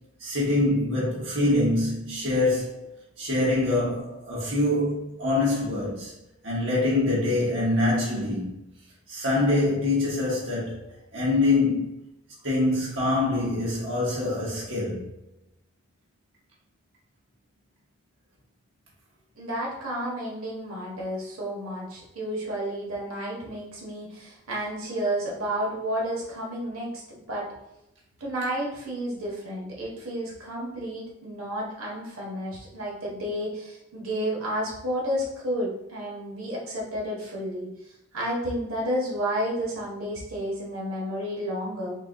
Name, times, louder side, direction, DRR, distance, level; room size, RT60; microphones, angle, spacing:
voice 1, 0.2-2.9 3.2-6.1 6.4-8.6 9.1-10.8 11.1-12.0 12.4-15.1, left 2 dB, 60° right, 1.2 m, -25 dB
voice 2, 19.4-27.5 28.2-37.7 38.1-41.9, equal, 90° right, 1.4 m, -31 dB
4.4 x 2.4 x 3.7 m
head